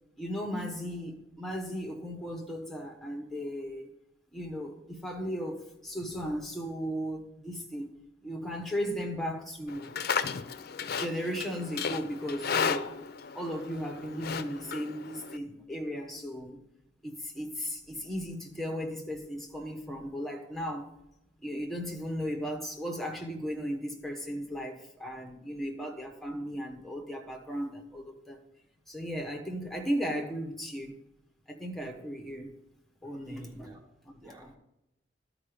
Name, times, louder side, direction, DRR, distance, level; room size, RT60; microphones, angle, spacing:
voice 1, 0.2-3.9 4.3-7.9 8.2-9.9 11.0-12.9 13.3-16.6 17.0-20.9 21.4-28.4 28.9-31.0 31.5-32.5 33.0-33.7 34.0-34.5, equal, ahead, 2 dB, 1.2 m, -36 dB
Livestock farm animals working animals, 9.7-15.4, left 6 dB, 60° left, 0.5 m, -34 dB
voice 2, 33.1-33.9 34.2-34.6, equal, 20° right, 1 dB, 0.7 m, -50 dB
12.0 x 4.9 x 5.1 m, 0.90 s
head